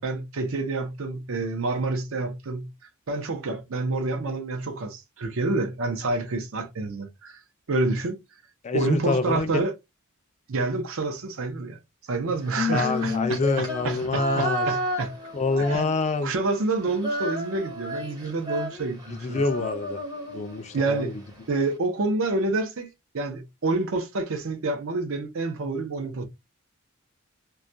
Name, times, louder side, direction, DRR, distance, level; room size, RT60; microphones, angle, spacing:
voice 1, 0.0-2.7 3.1-7.4 7.7-8.2 8.7-9.7 10.5-11.8 12.1-15.1 15.6-15.8 16.2-19.4 20.7-21.2 21.5-22.9 23.1-26.2, right 3 dB, 65° right, 0.6 m, -28 dB
voice 2, 8.6-9.7 12.7-14.7 15.3-16.3 19.1-20.0 20.3-21.2, left 3 dB, 30° left, 0.3 m, -26 dB
Female singing, 12.4-16.3 16.6-20.9, left 1 dB, 20° right, 0.7 m, -31 dB
2.3 x 2.2 x 2.6 m
head